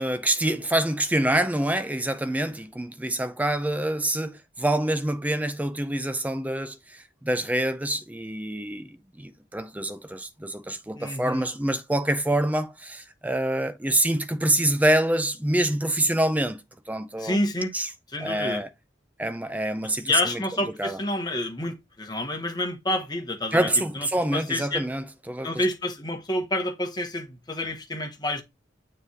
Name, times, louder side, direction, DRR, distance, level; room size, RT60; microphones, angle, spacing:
voice 1, 0.0-16.6 16.9-17.4 17.7-17.9 18.2-18.7 19.2-20.4 20.8-21.0 23.5-25.6, right 1 dB, 10° right, 0.4 m, -26 dB
voice 2, 11.0-11.5 17.2-17.7 18.1-18.6 20.0-23.7 23.9-24.8 25.4-28.4, left 1 dB, 20° left, 1.1 m, -28 dB
7.0 x 3.2 x 4.2 m
head